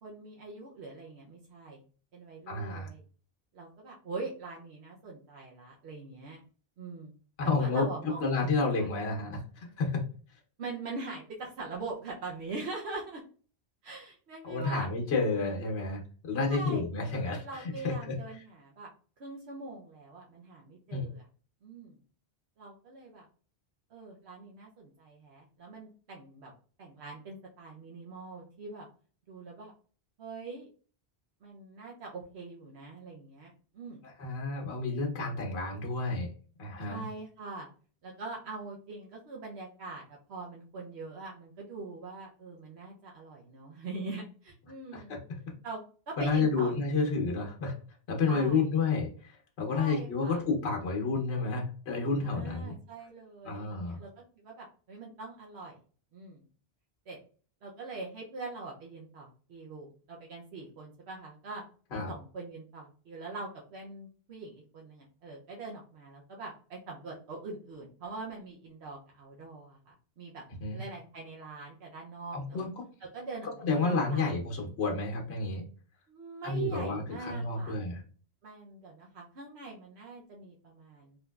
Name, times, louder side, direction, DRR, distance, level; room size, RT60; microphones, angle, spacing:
voice 1, 0.0-1.8 2.1-3.0 3.5-6.4 6.8-7.1 7.4-8.2 8.8-8.9 10.6-13.2 13.8-14.9 16.5-18.9 19.2-21.2 21.6-22.0 22.6-23.2 23.9-26.5 26.8-28.9 29.3-29.7 30.2-30.7 31.4-34.0 36.9-37.7 38.0-45.2 45.6-45.8 46.1-47.3 48.3-48.6 49.7-50.4 52.2-54.1 54.4-55.8 56.1-56.4 57.1-57.2 57.6-61.6 61.9-70.4 70.7-72.7 73.1-74.3 76.1-77.7 78.4-81.2, right 3 dB, 80° right, -2 dB, 1.0 m, -43 dB
voice 2, 2.5-2.9 7.4-7.8 8.2-10.0 14.4-18.2 20.9-21.1 34.2-36.3 36.6-37.0 44.9-45.2 46.2-47.7 48.1-52.7 53.4-54.0 61.9-62.1 70.6-70.8 72.3-72.7 73.4-75.6 76.4-78.0, left 3 dB, 80° left, 0 dB, 1.1 m, -30 dB
3.6 x 2.6 x 2.3 m, 0.40 s
omnidirectional pair, 1.1 m